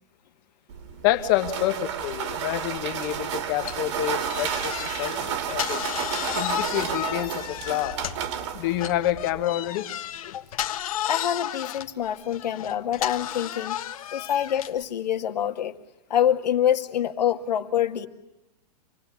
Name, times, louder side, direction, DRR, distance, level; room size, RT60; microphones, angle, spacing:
sound 1, 0.7-9.4, right 8 dB, 45° right, 2.3 m, -32 dB
voice 1, 1.0-5.8 6.3-8.0 8.5-9.9 14.2-14.3, left 13 dB, 30° left, 9 dB, 1.6 m, -28 dB
sound 2, 3.6-8.4 8.8-14.8, left 11 dB, 55° left, 1.5 m, -33 dB
voice 2, 11.0-13.8 14.1-15.8 16.1-18.1, left 10 dB, 85° left, 8 dB, 2.0 m, -26 dB
27.0 x 19.5 x 9.5 m, 0.96 s
supercardioid pair, 175°, 21 cm